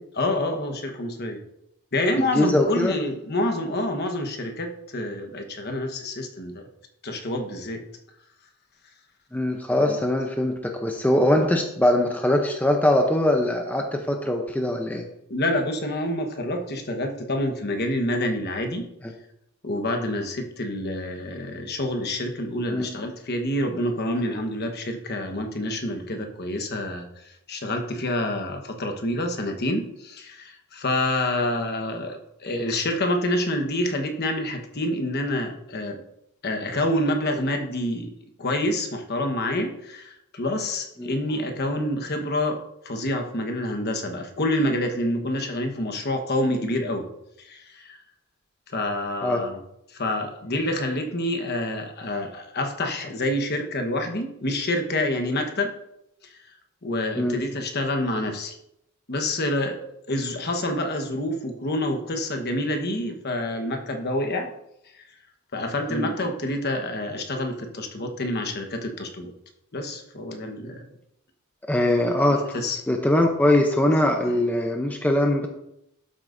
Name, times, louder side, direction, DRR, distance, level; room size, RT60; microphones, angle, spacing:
voice 1, 0.2-1.4 1.9-6.7 7.0-7.8 9.8-10.0 15.3-18.9 19.6-36.0 36.4-38.1 38.4-47.1 47.4-48.0 48.7-49.6 49.9-55.7 56.2-56.4 56.8-58.6 59.1-59.8 60.1-64.5 64.9-65.1 65.5-69.3 69.7-70.8 72.2-72.8 74.0-74.4, left 1 dB, 45° left, 4 dB, 1.2 m, -27 dB
voice 2, 2.3-3.0 9.3-15.1 22.7-22.9 41.0-41.1 49.2-49.4 57.2-57.4 65.9-66.1 71.7-72.4 72.9-75.5, left 1 dB, 5° left, 3 dB, 0.6 m, -22 dB
12.0 x 7.7 x 2.6 m, 0.81 s
head